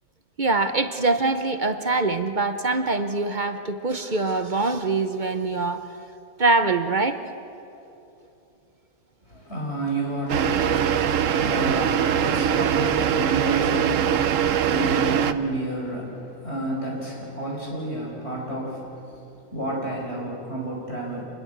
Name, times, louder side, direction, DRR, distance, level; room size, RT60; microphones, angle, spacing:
voice 1, 0.4-5.8 6.4-7.2, right 3 dB, 40° right, 9 dB, 0.8 m, -23 dB
voice 2, 9.3-19.2 19.5-21.2, right 1 dB, 45° left, -2 dB, 5.5 m, -30 dB
sound 1, 10.3-15.3, right 8 dB, 60° right, 1.1 m, -22 dB
26.5 x 20.5 x 8.0 m, 2.9 s
omnidirectional pair, 1.6 m